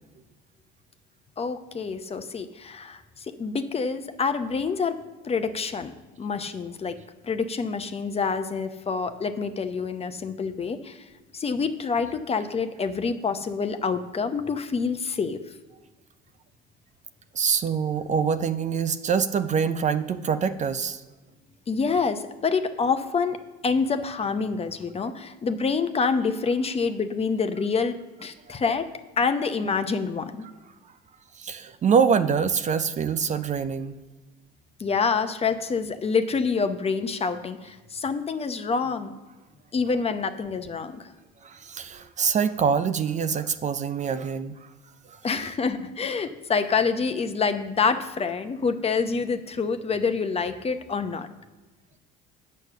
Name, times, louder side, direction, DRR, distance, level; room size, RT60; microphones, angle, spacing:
voice 1, 1.4-5.0 5.2-5.9 6.2-7.0 7.2-11.0 11.3-15.4 21.7-23.4 23.6-28.9 29.2-30.5 34.8-39.1 39.7-41.1 45.2-51.3, left 5 dB, 30° left, 9 dB, 0.8 m, -27 dB
voice 2, 17.3-21.0 25.0-25.1 31.4-33.9 41.4-44.5 45.1-45.2, right 6 dB, 35° right, 11 dB, 0.5 m, -25 dB
8.2 x 6.4 x 6.7 m, 1.2 s
supercardioid pair, 85°, 21 cm